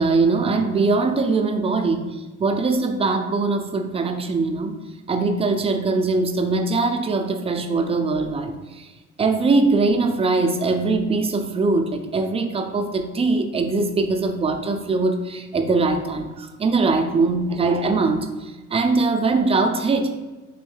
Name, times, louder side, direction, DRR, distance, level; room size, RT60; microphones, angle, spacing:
voice 1, 0.0-4.7 5.1-8.9 9.2-20.1, right 3 dB, 20° right, 6 dB, 0.3 m, -21 dB
3.1 x 2.7 x 3.2 m, 1.2 s
cardioid pair, 90°, 30 cm